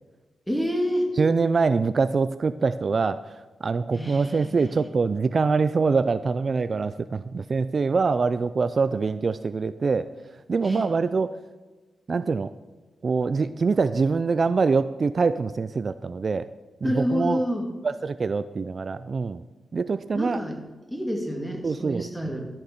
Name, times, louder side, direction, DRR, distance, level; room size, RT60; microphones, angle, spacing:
voice 1, 0.5-1.1 3.9-4.9 10.6-10.9 16.8-17.7 20.1-20.6 20.9-22.5, equal, ahead, 3 dB, 1.8 m, -28 dB
voice 2, 1.2-3.2 3.6-10.1 10.5-11.3 12.1-12.5 13.0-16.5 16.8-17.4 17.8-19.4 19.7-20.4 21.6-22.1, right 4 dB, 45° right, 13 dB, 0.3 m, -24 dB
12.5 x 6.5 x 5.7 m, 1.3 s
wide cardioid pair, 100°, 0 cm